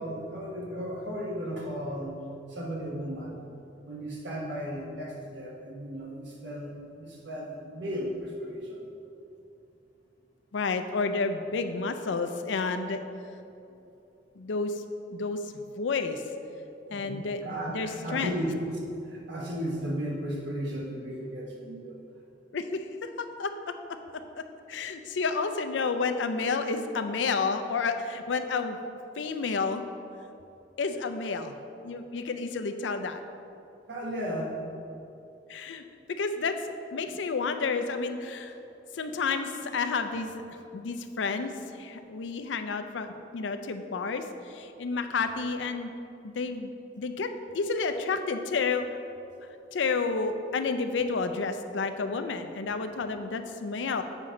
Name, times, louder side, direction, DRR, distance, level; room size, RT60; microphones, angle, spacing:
voice 1, 0.0-2.2 2.5-3.4 3.8-8.9 16.9-22.0 33.9-34.6, equal, 70° right, -2 dB, 1.3 m, -35 dB
voice 2, 10.5-13.0 14.4-14.8 15.1-16.2 16.9-17.4 17.7-18.3 22.5-23.7 24.4-28.8 29.2-29.8 30.8-31.6 31.8-33.2 35.5-35.8 36.1-38.6 38.9-40.4 40.7-45.9 46.2-46.7 47.0-48.9 49.7-54.0, left 4 dB, 80° left, 8 dB, 0.5 m, -30 dB
7.5 x 5.2 x 3.8 m, 2.8 s
head